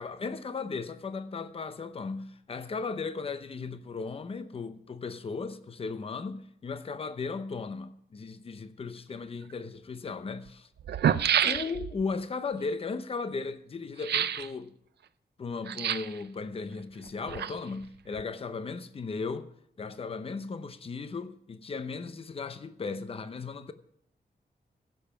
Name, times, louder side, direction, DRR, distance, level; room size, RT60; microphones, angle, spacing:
voice 1, 0.0-10.6 11.4-14.7 15.4-19.5 19.8-23.7, left 4 dB, 35° left, 0.7 m, -36 dB
sound 1, 9.5-9.6 10.5-10.6 10.8-12.0 14.0-14.5 15.7-16.2 17.0-17.8 18.1-18.2, right 9 dB, 85° right, 0.5 m, -28 dB
15.0 x 6.9 x 5.8 m
wide cardioid pair, 170°, 17 cm